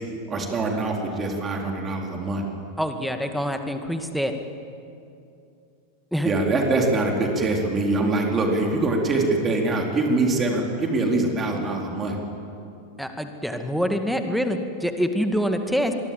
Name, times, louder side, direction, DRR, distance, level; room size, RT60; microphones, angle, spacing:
voice 1, 0.3-2.4 6.2-12.2, right 2 dB, 20° right, 1 dB, 4.2 m, -23 dB
voice 2, 2.8-4.3 6.1-6.3 13.0-15.9, equal, ahead, 6 dB, 2.1 m, -25 dB
26.0 x 22.5 x 7.8 m, 2.5 s
figure-of-eight pair, 90°, 0 cm